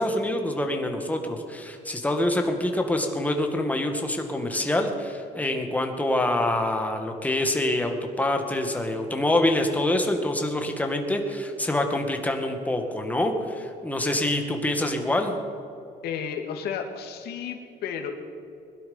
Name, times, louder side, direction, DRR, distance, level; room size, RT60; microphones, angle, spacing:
voice 1, 0.0-15.4, left 1 dB, 10° left, 4 dB, 2.0 m, -26 dB
voice 2, 16.0-18.1, left 7 dB, 70° left, 3 dB, 2.1 m, -32 dB
21.5 x 12.0 x 5.6 m, 2.6 s
cardioid pair, 110°, 17 cm